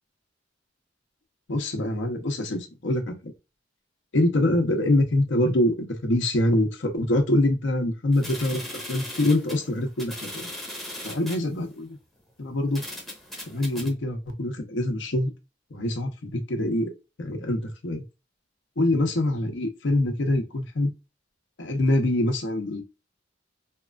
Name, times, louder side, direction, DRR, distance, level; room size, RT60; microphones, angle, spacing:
voice 1, 1.5-3.1 4.1-8.6 8.9-10.5 11.0-12.0 12.4-12.8 13.5-15.3 15.7-16.9 17.2-18.0 18.8-20.9 21.6-22.8, left 1 dB, 65° left, 0.7 m, -24 dB
sound 1, 8.1-11.5 12.2-12.3 12.7-13.9, left 1 dB, ahead, 0.7 m, -38 dB
2.9 x 2.3 x 2.2 m
head